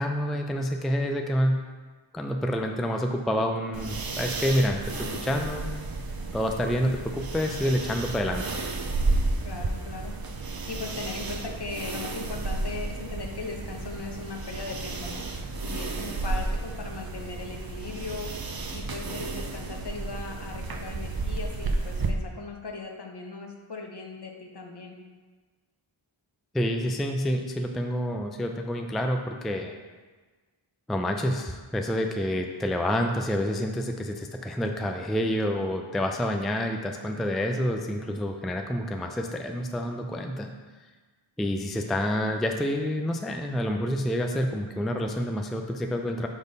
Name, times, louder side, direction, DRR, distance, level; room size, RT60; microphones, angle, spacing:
voice 1, 0.0-1.6 2.1-5.7 6.3-8.6 26.5-29.7 30.9-40.5 41.4-46.3, equal, ahead, 4 dB, 0.4 m, -28 dB
sound 1, 3.7-22.1, right 3 dB, 50° right, 0.7 m, -32 dB
voice 2, 9.4-10.1 10.7-15.3 15.6-25.0, left 4 dB, 55° left, 2 dB, 1.0 m, -38 dB
5.2 x 4.2 x 5.3 m, 1.4 s
wide cardioid pair, 60°, 49 cm